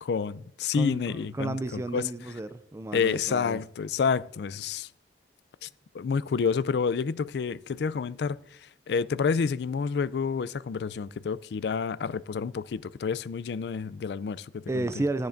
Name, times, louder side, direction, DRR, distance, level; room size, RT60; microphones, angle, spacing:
voice 1, 0.0-2.1 2.9-4.9 5.6-5.7 5.9-15.0, left 5 dB, 65° left, 0.3 m, -29 dB
voice 2, 0.7-3.6 14.7-15.3, right 2 dB, 15° right, 0.3 m, -32 dB
14.0 x 10.5 x 2.6 m
head